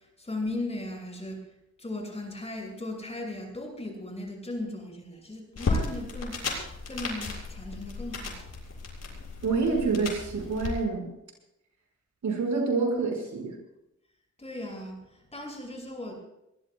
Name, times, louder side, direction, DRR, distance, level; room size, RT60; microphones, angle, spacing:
voice 1, 0.0-1.5 1.8-8.4 14.4-16.1, left 2 dB, 20° left, 0 dB, 6.7 m, -37 dB
sound 1, 5.6-10.7, left 3 dB, 60° left, 7.2 m, -34 dB
voice 2, 9.4-11.1 12.2-13.6, right 4 dB, 90° right, 2 dB, 6.1 m, -27 dB
23.5 x 20.5 x 2.5 m, 0.85 s
wide cardioid pair, 135°, 29 cm